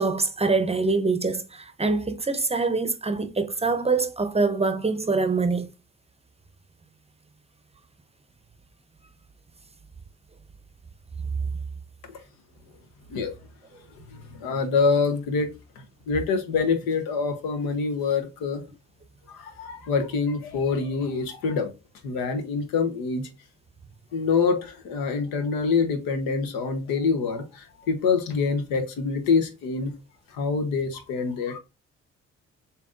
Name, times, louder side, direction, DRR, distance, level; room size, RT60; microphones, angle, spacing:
voice 1, 0.0-5.7, right 3 dB, 20° right, 0.7 m, -24 dB
voice 2, 14.1-15.5 16.1-18.6 19.3-21.7 22.0-23.3 24.1-29.9 30.3-31.6, left 5 dB, 80° left, 1.0 m, -25 dB
7.1 x 2.8 x 2.5 m
hypercardioid pair, 50°, 35 cm